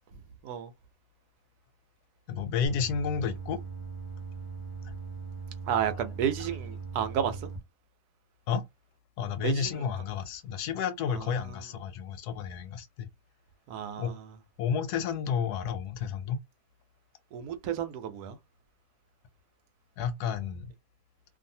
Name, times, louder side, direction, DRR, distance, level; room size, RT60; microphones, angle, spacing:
voice 1, 2.3-3.6 8.5-8.6 9.2-13.1 14.0-14.2 14.6-16.4 20.0-20.7, left 7 dB, 75° left, 1.0 m, -31 dB
sound 1, 2.7-7.6, right 4 dB, 25° right, 0.7 m, -40 dB
voice 2, 5.7-7.5 9.4-9.7 11.1-11.3 13.7-14.3 17.3-18.4, right 9 dB, 75° right, 1.1 m, -31 dB
2.6 x 2.5 x 2.7 m
omnidirectional pair, 1.8 m